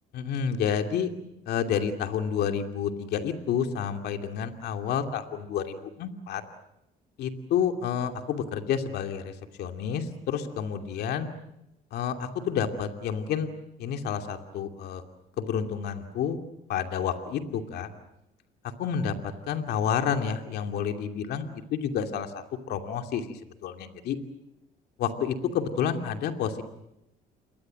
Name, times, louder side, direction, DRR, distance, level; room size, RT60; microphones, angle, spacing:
voice 1, 0.1-1.1 1.5-6.4 7.2-9.3 9.6-11.3 11.9-13.5 13.8-15.0 15.4-16.4 16.7-17.9 18.8-19.1 19.5-21.5 21.7-24.2 25.0-26.6, left 8 dB, 75° left, 6 dB, 2.7 m, -29 dB
28.5 x 22.5 x 7.8 m, 0.85 s
cardioid pair, 110°, 17 cm